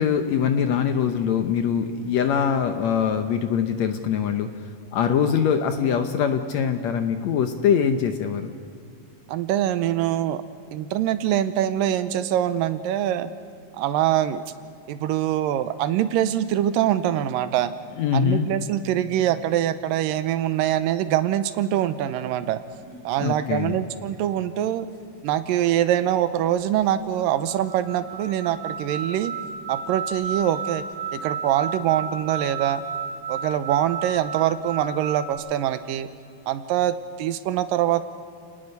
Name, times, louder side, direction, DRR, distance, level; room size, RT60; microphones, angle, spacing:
voice 1, 0.0-4.5 4.9-8.5 18.0-18.5 23.2-23.8, left 7 dB, 70° left, 7 dB, 1.8 m, -23 dB
voice 2, 9.3-10.4 10.7-13.3 13.7-14.4 14.9-17.7 18.1-22.6 23.1-24.9 25.2-29.3 29.7-30.8 31.1-32.8 33.3-36.1 36.5-38.0, right 11 dB, 80° right, 12 dB, 2.5 m, -24 dB
sound 1, 22.8-23.0 24.0-24.2 25.0-25.1 26.0-26.1 27.1-27.2 27.3-35.3, right 6 dB, 30° right, 3.2 m, -33 dB
30.0 x 19.0 x 5.4 m, 2.4 s
omnidirectional pair, 3.9 m